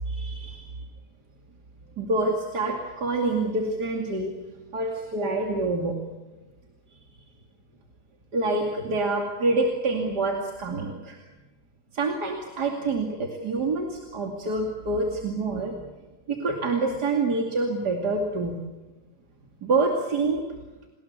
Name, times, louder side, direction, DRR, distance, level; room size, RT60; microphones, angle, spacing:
voice 1, 0.1-0.7 2.0-4.3 4.7-5.9 8.3-11.2 11.9-15.8 16.3-18.6 19.6-20.4, right 3 dB, 80° right, 2 dB, 3.2 m, -26 dB
30.0 x 19.5 x 8.3 m, 1.2 s
omnidirectional pair, 1.7 m